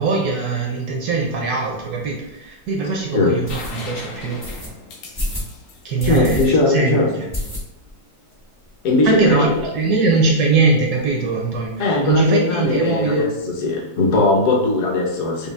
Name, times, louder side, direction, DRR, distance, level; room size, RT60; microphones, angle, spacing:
voice 1, 0.0-4.4 5.8-7.1 9.0-13.3, right 4 dB, 70° right, -1 dB, 1.0 m, -21 dB
sound 1, 2.0-2.1 2.6-2.7 3.4-3.7 4.4-4.7 5.1-5.5 6.0-6.4 6.8-6.9 7.3-8.0 8.3-8.4 8.7-8.8 9.0-9.6, left 1 dB, 30° left, 0.4 m, -28 dB
sound 2, 3.5-7.2 9.1-9.2, left 3 dB, 80° left, 0.7 m, -38 dB
voice 2, 6.0-7.1 8.8-9.6 11.8-13.3 13.6-15.5, left 2 dB, 60° left, -1 dB, 1.0 m, -19 dB
5.0 x 2.3 x 2.3 m, 0.93 s
omnidirectional pair, 2.1 m